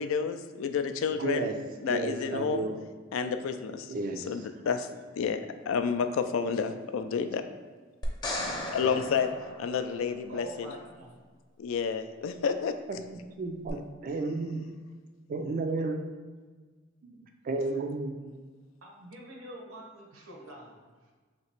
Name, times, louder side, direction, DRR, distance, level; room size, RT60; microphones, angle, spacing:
voice 1, 0.0-1.5 1.8-2.7 3.1-4.9 5.1-5.4 5.7-7.4 8.7-9.3 9.6-10.7 11.6-12.7, left 6 dB, 75° left, 9 dB, 0.3 m, -30 dB
voice 2, 1.2-1.5 1.8-2.8 3.9-4.3 12.9-14.7 15.3-16.0 17.0-18.3, right 3 dB, 45° right, 5 dB, 0.4 m, -33 dB
sound 1, 8.0-10.3 13.7-13.8, left 1 dB, 20° left, 0.6 m, -36 dB
voice 3, 10.3-11.2 18.8-21.1, right 1 dB, 80° right, -1 dB, 0.9 m, -46 dB
3.2 x 2.9 x 4.4 m, 1.4 s
head